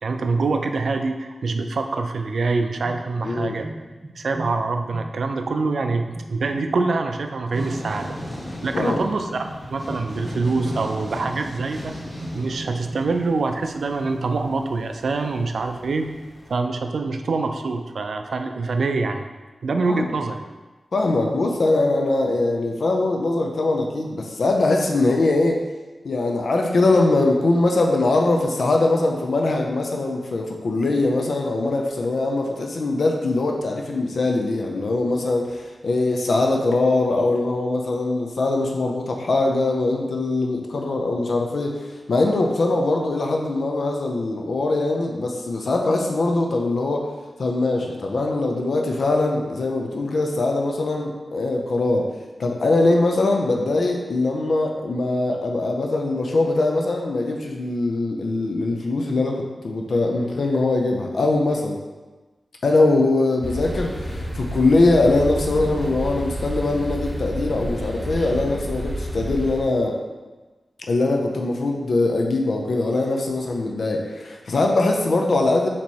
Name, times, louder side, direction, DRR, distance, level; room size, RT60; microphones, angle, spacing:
voice 1, 0.0-3.7 4.2-8.2 8.6-12.0 12.3-16.1 16.5-19.3 19.6-20.5, right 3 dB, 80° right, 6 dB, 0.3 m, -25 dB
sound 1, 2.8-14.2, right 1 dB, 35° right, 1.0 m, -40 dB
voice 2, 3.2-3.6 8.7-9.0 19.8-20.1 20.9-25.6 26.0-47.1 47.4-52.1 52.4-61.8 62.6-70.0 70.9-75.7, left 2 dB, 75° left, 1 dB, 0.5 m, -22 dB
sound 2, 7.5-16.5, left 1 dB, 20° left, 1.2 m, -37 dB
sound 3, 63.4-69.6, equal, 15° right, 1.2 m, -30 dB
4.1 x 2.9 x 4.5 m, 1.2 s
wide cardioid pair, 75°, 0 cm